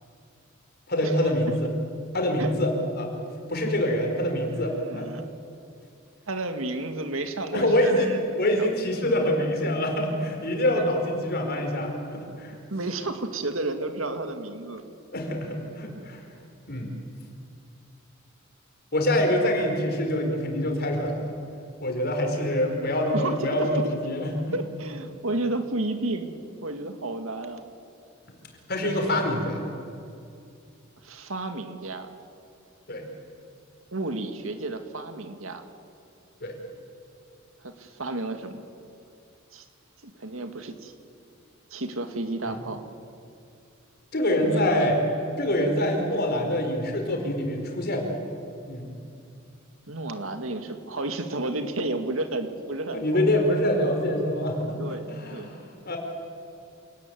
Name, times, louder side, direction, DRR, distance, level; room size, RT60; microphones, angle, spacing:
voice 1, 0.9-1.7 2.1-2.7 3.0-3.1 3.5-5.1 7.5-8.1 8.4-12.5 15.1-16.2 16.7-16.9 18.9-21.3 21.8-24.5 28.7-29.6 32.9-33.1 36.4-36.6 44.1-45.0 45.4-48.2 48.7-48.9 52.9-54.8 55.1-56.0, left 1 dB, 50° left, 3 dB, 4.7 m, -25 dB
voice 2, 4.9-5.2 6.3-8.7 10.5-10.9 12.7-14.8 23.1-23.7 24.5-27.6 28.8-29.2 31.0-32.1 33.9-35.6 37.6-38.6 39.5-39.7 40.0-40.9 41.7-42.9 44.4-45.0 49.9-53.3 54.8-55.5, right 2 dB, 85° right, 7 dB, 2.2 m, -32 dB
27.5 x 18.5 x 9.4 m, 2.5 s
head